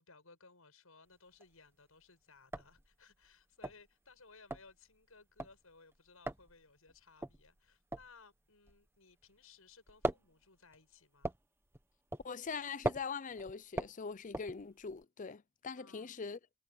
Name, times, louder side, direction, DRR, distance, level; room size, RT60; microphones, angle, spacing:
voice 1, 0.0-11.4 15.8-16.2, left 4 dB, 80° left, 7.3 m, -61 dB
sound 1, 1.1-1.7 2.0-2.1 2.4-9.4 9.7-15.0, right 1 dB, 10° right, 1.5 m, -41 dB
voice 2, 12.2-16.4, left 5 dB, 35° left, 0.5 m, -42 dB
head